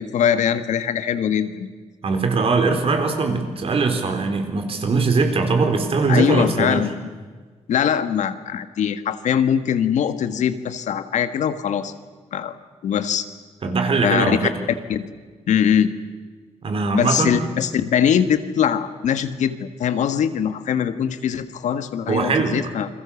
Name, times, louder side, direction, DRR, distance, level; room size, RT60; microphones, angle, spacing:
voice 1, 0.0-1.7 6.1-7.0 7.7-11.9 12.3-12.5 12.8-13.2 14.0-14.5 14.9-15.0 15.5-15.9 16.9-22.9, left 8 dB, 90° left, 11 dB, 1.6 m, -22 dB
voice 2, 2.0-6.8 13.6-14.5 16.6-17.4 22.1-22.6, right 4 dB, 55° right, 6 dB, 4.0 m, -21 dB
28.5 x 22.5 x 7.2 m, 1.5 s
cardioid pair, 120°, 12 cm